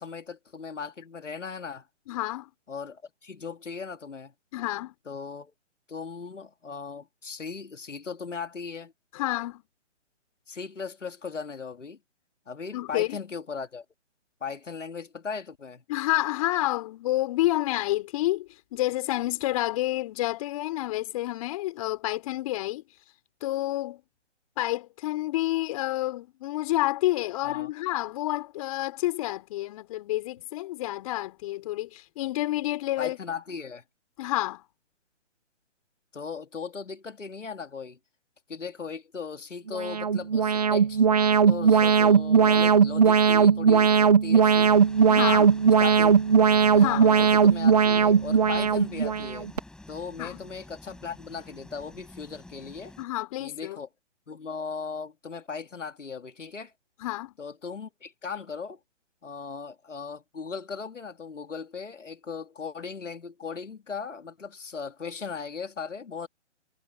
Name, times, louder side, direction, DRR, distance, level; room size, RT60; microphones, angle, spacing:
voice 1, 0.0-1.9 2.7-4.3 5.1-5.5 5.9-8.9 10.5-12.0 12.5-13.8 14.4-15.8 27.4-27.7 33.0-33.8 36.1-38.0 38.5-41.0 41.5-44.8 45.8-46.2 46.7-49.5 49.9-52.9 53.4-53.9 54.3-56.7 57.4-58.8 59.2-66.3, left 5 dB, 80° left, 3.0 m, -38 dB
voice 2, 2.1-2.5 4.5-4.9 9.1-9.6 12.7-13.2 15.9-22.8 23.4-24.0 24.6-33.2 34.2-34.6 45.1-45.5 46.8-47.1 50.2-50.4 53.0-53.8 57.0-57.3, left 16 dB, 30° left, 4.0 m, -29 dB
Alarm, 39.7-49.6, right 6 dB, 35° right, 0.4 m, -19 dB
sound 1, 44.6-53.0, left 2 dB, ahead, 7.5 m, -49 dB
hypercardioid pair, 155°, 37 cm